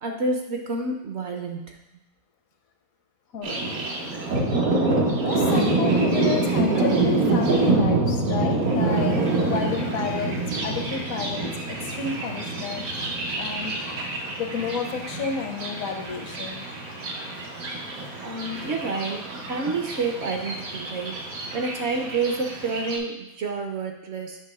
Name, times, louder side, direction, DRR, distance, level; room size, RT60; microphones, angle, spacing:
voice 1, 0.0-1.8 18.2-21.2 21.5-24.4, right 3 dB, 55° right, 3 dB, 0.9 m, -29 dB
voice 2, 3.3-3.7 4.6-12.9 13.4-13.8 14.4-16.6, left 5 dB, 70° left, 4 dB, 1.1 m, -31 dB
Thunder, 3.4-23.0, right 2 dB, 80° right, 1.5 m, -26 dB
7.5 x 3.0 x 6.0 m, 0.84 s
omnidirectional pair, 1.5 m